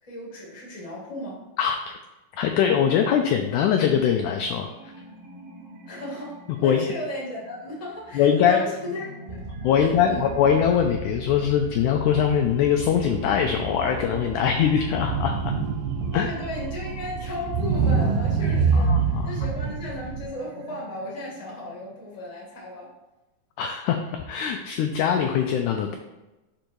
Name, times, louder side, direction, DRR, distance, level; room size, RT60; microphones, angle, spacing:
voice 1, 0.0-1.4 5.8-9.4 9.7-10.4 16.1-22.9, left 1 dB, 15° left, -4 dB, 1.3 m, -35 dB
voice 2, 2.4-4.7 6.6-6.9 8.2-8.6 9.6-15.5 16.1-16.3 18.7-19.3 23.6-26.0, left 8 dB, 85° left, 4 dB, 1.8 m, -22 dB
sound 1, 4.2-22.2, right 2 dB, 85° right, 1.3 m, -44 dB
sound 2, 9.3-20.2, right 5 dB, 65° right, 1.8 m, -27 dB
5.2 x 5.1 x 4.5 m, 1.1 s
omnidirectional pair, 4.0 m